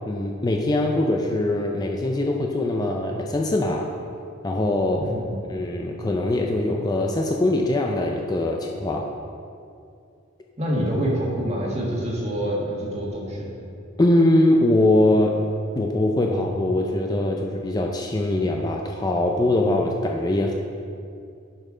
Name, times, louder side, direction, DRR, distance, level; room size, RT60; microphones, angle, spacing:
voice 1, 0.0-3.9 4.4-5.1 5.5-9.1 14.0-15.4 15.7-20.5, left 1 dB, 20° left, 1 dB, 0.4 m, -22 dB
voice 2, 4.9-5.4 10.6-13.5, equal, 35° right, -4 dB, 1.5 m, -26 dB
7.4 x 5.4 x 4.9 m, 2.5 s
head